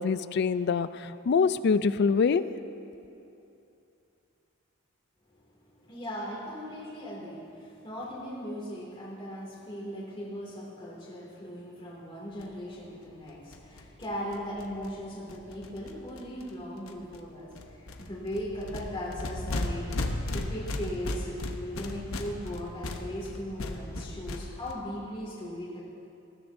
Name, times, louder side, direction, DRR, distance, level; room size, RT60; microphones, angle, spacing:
voice 1, 0.0-2.4, left 5 dB, 55° left, 14 dB, 0.4 m, -25 dB
voice 2, 5.4-19.9 20.3-25.8, equal, 25° left, -8 dB, 2.4 m, -38 dB
sound 1, 12.4-12.5 12.7-12.8 13.0-13.1 13.3-16.5 16.9-17.2 17.5-24.7, left 2 dB, 85° left, 1.0 m, -36 dB
19.5 x 14.0 x 2.7 m, 2.8 s
head